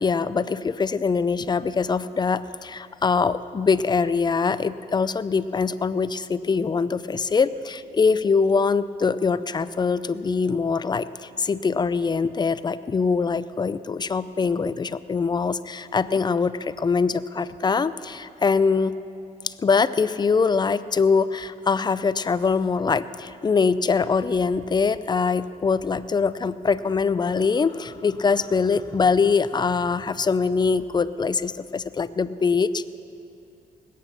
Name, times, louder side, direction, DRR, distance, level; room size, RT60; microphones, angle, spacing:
voice 1, 0.0-19.0 19.4-32.9, left 5 dB, 30° left, 15 dB, 0.5 m, -23 dB
20.0 x 9.2 x 6.0 m, 2.7 s
cardioid pair, 85°, 15 cm